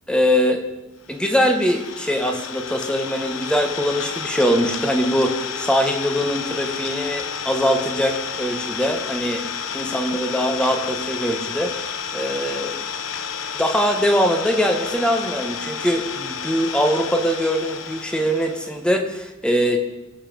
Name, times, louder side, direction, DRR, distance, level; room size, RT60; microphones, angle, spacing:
voice 1, 0.1-0.6 1.1-9.4 9.7-11.7 12.1-12.7 13.6-19.8, equal, 5° left, 4 dB, 1.5 m, -22 dB
Idling, 1.1-18.8, left 7 dB, 85° left, 1.1 m, -31 dB
24.0 x 8.5 x 5.5 m, 0.98 s
head